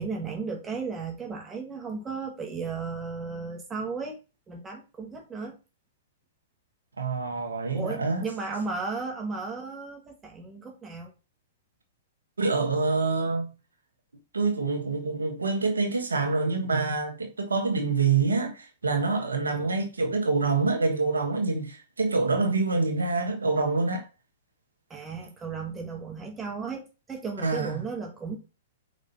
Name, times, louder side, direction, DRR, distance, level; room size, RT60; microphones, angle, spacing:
voice 1, 0.0-4.2 4.5-5.6 7.7-11.1 19.5-19.7 24.9-28.4, right 4 dB, 20° right, 1.9 m, -35 dB
voice 2, 7.0-8.2 12.4-13.5 14.3-24.1 27.4-27.8, right 4 dB, 90° right, 1.5 m, -26 dB
5.5 x 4.9 x 5.7 m
hypercardioid pair, 115°, 0 cm